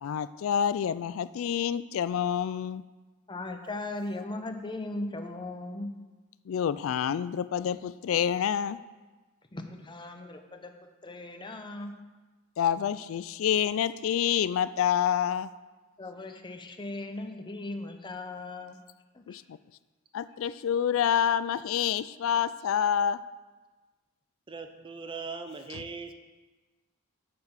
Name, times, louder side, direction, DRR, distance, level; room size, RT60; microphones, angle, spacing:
voice 1, 0.0-2.8 6.5-8.8 12.6-15.5 19.3-19.6 20.1-23.2, left 9 dB, 65° left, 15 dB, 0.3 m, -27 dB
voice 2, 3.3-5.9 9.5-10.7 11.0-11.9 16.0-18.8 19.1-19.4, left 2 dB, 20° left, 5 dB, 0.7 m, -38 dB
voice 3, 24.5-26.1, right 4 dB, 25° right, 7 dB, 0.5 m, -40 dB
8.0 x 6.8 x 5.7 m, 1.3 s
head